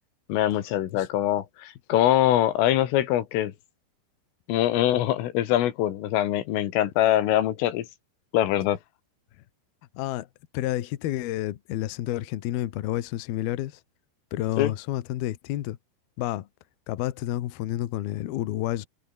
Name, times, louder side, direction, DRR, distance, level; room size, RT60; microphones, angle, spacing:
voice 1, 0.3-3.5 4.5-7.9 8.3-8.8 14.6-14.7, left 13 dB, 85° left, 4.5 m, -23 dB
voice 2, 9.9-10.3 10.5-13.8 14.3-15.8 16.2-16.5 16.9-18.9, left 14 dB, 70° left, 2.6 m, -30 dB
open air
omnidirectional pair, 5.7 m